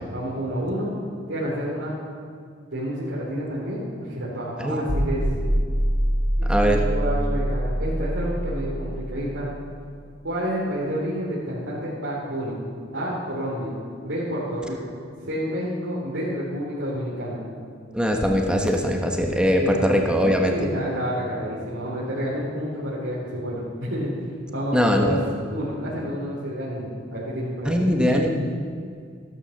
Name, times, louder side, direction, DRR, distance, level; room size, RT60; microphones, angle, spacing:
voice 1, 0.1-0.9 1.3-2.0 2.7-5.4 6.4-9.5 10.2-12.6 12.9-13.8 14.0-15.0 15.2-17.4 19.6-19.9 20.4-24.1 24.5-25.2 25.5-27.8, equal, 90° right, -9 dB, 4.0 m, -29 dB
sound 1, 4.9-9.9, equal, 60° right, 3.0 m, -25 dB
voice 2, 6.5-6.8 17.9-20.5 24.7-25.2 27.6-28.3, equal, 5° right, 2 dB, 1.3 m, -21 dB
15.0 x 12.5 x 6.7 m, 2.2 s
head